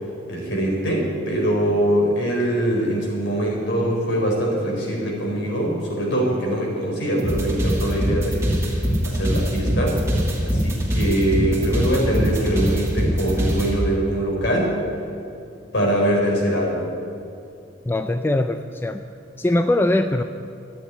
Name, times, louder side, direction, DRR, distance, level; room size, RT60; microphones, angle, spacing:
voice 1, 0.3-8.5 9.0-10.0 10.4-14.8 15.7-16.8, right 1 dB, 65° left, -2 dB, 4.4 m, -23 dB
sound 1, 7.2-13.7, equal, 15° right, 2.4 m, -22 dB
voice 2, 17.9-19.0 19.4-20.2, left 1 dB, 10° left, 7 dB, 0.3 m, -21 dB
14.0 x 8.8 x 9.9 m, 2.6 s
head